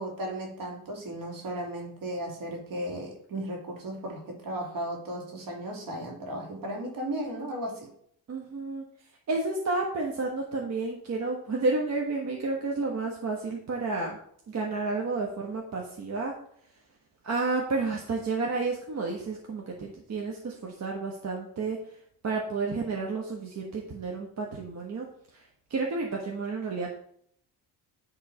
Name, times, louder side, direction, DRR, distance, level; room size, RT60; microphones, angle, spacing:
voice 1, 0.0-7.9, right 1 dB, 60° right, 1 dB, 2.8 m, -35 dB
voice 2, 8.3-8.8 9.3-14.2 14.5-16.3 17.2-21.8 22.2-25.1 25.3-25.4 25.7-26.9, right 3 dB, 45° right, 0 dB, 1.3 m, -31 dB
9.9 x 3.7 x 4.9 m, 0.67 s
cardioid pair, 110°, 38 cm